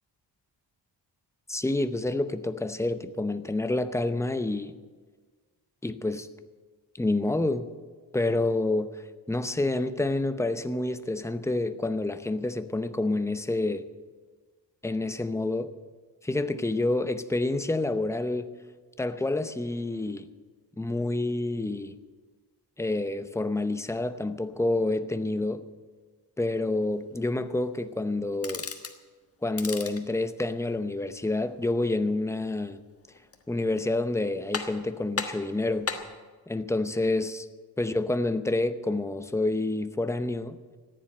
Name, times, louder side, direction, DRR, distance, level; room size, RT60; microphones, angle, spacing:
voice 1, 1.5-4.7 5.8-6.3 7.0-7.7 8.1-8.9 9.3-13.9 14.8-15.7 16.2-18.5 19.0-20.3 20.8-22.0 22.8-25.6 26.4-28.7 29.4-32.8 33.5-35.9 36.5-37.5 37.8-40.6, left 2 dB, 5° left, 0.7 m, -28 dB
sound 1, 28.3-29.0 29.5-30.1 33.1-33.6 34.0-34.1 34.5-34.9 35.2-36.1, left 5 dB, 35° left, 1.4 m, -35 dB
14.5 x 10.0 x 8.7 m
wide cardioid pair, 110°, 42 cm